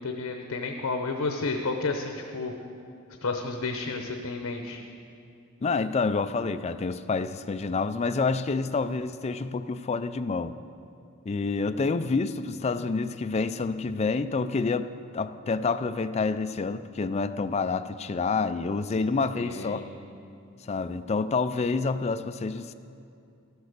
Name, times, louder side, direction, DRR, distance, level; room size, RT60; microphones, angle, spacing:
voice 1, 0.0-2.5 3.2-4.8 19.4-19.9, left 3 dB, 80° left, 4 dB, 0.8 m, -31 dB
voice 2, 5.6-10.6 11.3-19.8 20.7-22.7, left 4 dB, 30° left, 11 dB, 0.4 m, -28 dB
13.0 x 8.1 x 6.6 m, 2.5 s
head